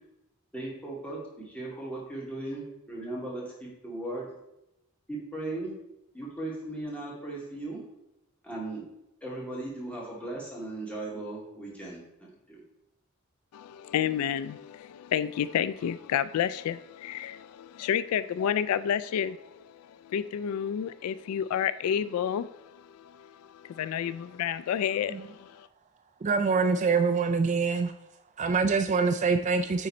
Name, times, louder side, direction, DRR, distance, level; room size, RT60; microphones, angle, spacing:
voice 1, 0.5-4.3 5.1-5.7 6.1-7.8 8.4-8.9 9.2-12.6, right 2 dB, 5° left, 2.2 m, -37 dB
voice 2, 13.5-25.7, left 9 dB, 90° left, 0.3 m, -30 dB
voice 3, 26.2-27.9 28.4-29.9, right 4 dB, 35° right, 0.3 m, -25 dB
9.3 x 3.9 x 4.2 m
head